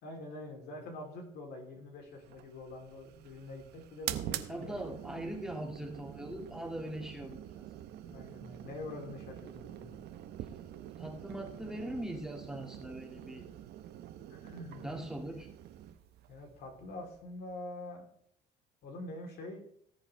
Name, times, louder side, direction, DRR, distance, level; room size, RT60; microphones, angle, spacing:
voice 1, 0.0-4.8 8.0-9.9 14.3-14.8 16.3-18.1 18.8-19.6, left 2 dB, 75° left, 1 dB, 3.6 m, -45 dB
sound 1, 2.2-17.5, right 12 dB, 75° right, 0.9 m, -45 dB
voice 2, 4.5-7.7 11.0-13.5 14.8-15.5, right 1 dB, 5° right, 0 dB, 2.2 m, -41 dB
18.5 x 7.9 x 3.4 m, 0.67 s
cardioid pair, 110°, 17 cm